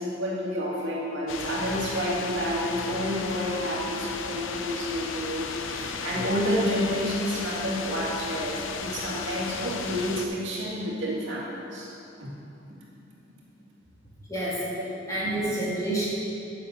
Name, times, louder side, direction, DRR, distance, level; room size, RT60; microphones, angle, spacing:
voice 1, 0.0-11.9 12.2-12.3 14.7-14.9, equal, 70° right, -5 dB, 2.3 m, -29 dB
sound 1, 1.3-10.3, left 5 dB, 80° left, 0.6 m, -35 dB
voice 2, 14.3-14.6 15.1-16.1, right 1 dB, 15° left, -9 dB, 2.6 m, -28 dB
9.5 x 6.8 x 6.5 m, 2.7 s
head